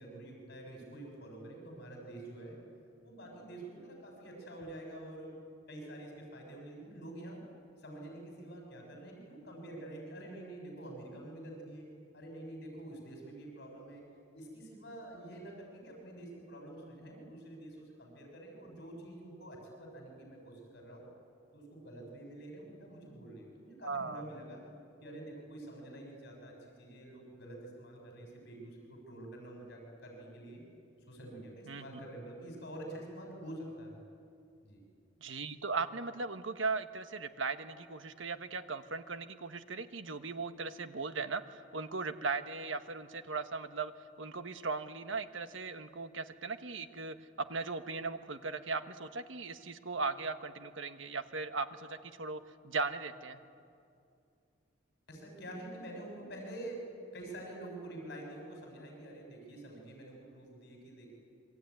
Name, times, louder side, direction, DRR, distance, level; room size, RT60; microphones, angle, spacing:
voice 1, 0.0-2.6 3.0-5.4 5.7-7.4 7.8-11.9 12.1-14.0 14.3-21.1 21.5-24.6 25.0-30.6 31.1-34.0 34.6-34.8 55.1-56.9 57.1-61.1, right 1 dB, 55° left, 1 dB, 6.5 m, -47 dB
voice 2, 23.8-24.3 31.7-32.0 35.2-43.9 44.2-53.4, right 4 dB, 75° right, 10 dB, 1.3 m, -38 dB
26.5 x 23.0 x 9.5 m, 2.4 s
head